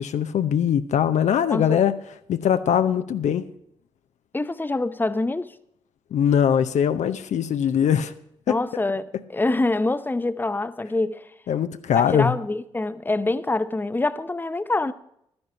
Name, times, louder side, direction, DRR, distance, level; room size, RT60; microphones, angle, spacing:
voice 1, 0.0-1.9 2.3-3.5 6.1-8.1 8.5-8.6 11.5-12.3, left 8 dB, 60° left, 0.7 m, -21 dB
voice 2, 1.5-1.8 4.3-5.5 8.5-11.3 11.9-14.9, left 2 dB, 15° left, 0.8 m, -25 dB
12.0 x 9.7 x 5.7 m
hypercardioid pair, 40°, 14 cm